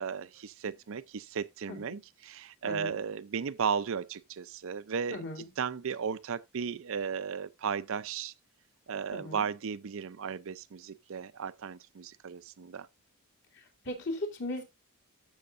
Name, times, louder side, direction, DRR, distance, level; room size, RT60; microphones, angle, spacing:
voice 1, 0.0-5.2 5.6-8.3 8.9-12.9, right 6 dB, 60° right, 0.5 m, -35 dB
voice 2, 1.7-2.0 2.6-3.0 5.1-5.5 9.1-9.5 13.5-14.6, left 1 dB, 50° left, 2.8 m, -38 dB
13.5 x 6.4 x 2.5 m
head